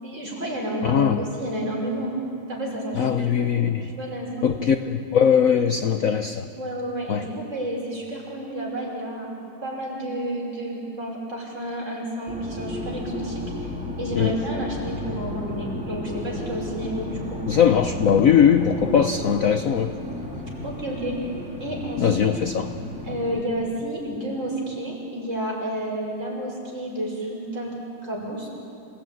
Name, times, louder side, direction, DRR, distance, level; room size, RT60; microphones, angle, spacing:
voice 1, 0.0-2.1 2.5-3.5 4.0-4.5 6.6-9.3 9.6-13.7 14.0-17.7 20.6-21.3 21.6-22.2 23.0-27.8 28.0-28.5, right 1 dB, 30° right, -3 dB, 6.0 m, -31 dB
voice 2, 0.8-1.2 2.9-3.9 4.4-6.5 7.1-7.2 14.2-14.4 17.5-19.9 22.0-22.7, left 8 dB, 70° left, 8 dB, 0.8 m, -20 dB
sound 1, 12.3-23.4, left 1 dB, 5° right, 3.7 m, -33 dB
27.5 x 17.0 x 9.3 m, 2.6 s
omnidirectional pair, 2.4 m